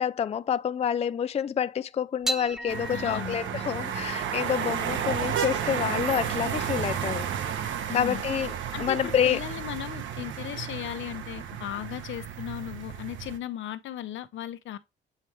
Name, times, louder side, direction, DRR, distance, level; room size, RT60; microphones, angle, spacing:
voice 1, 0.0-9.4, left 8 dB, 35° left, 0.4 m, -28 dB
sound 1, 2.2-8.8, right 1 dB, 5° right, 1.1 m, -39 dB
sound 2, 2.7-13.4, right 8 dB, 75° right, 1.2 m, -32 dB
voice 2, 2.9-3.4 7.9-8.2 8.7-14.8, left 11 dB, 75° left, 0.9 m, -36 dB
8.5 x 3.2 x 4.4 m
cardioid pair, 90°, 20 cm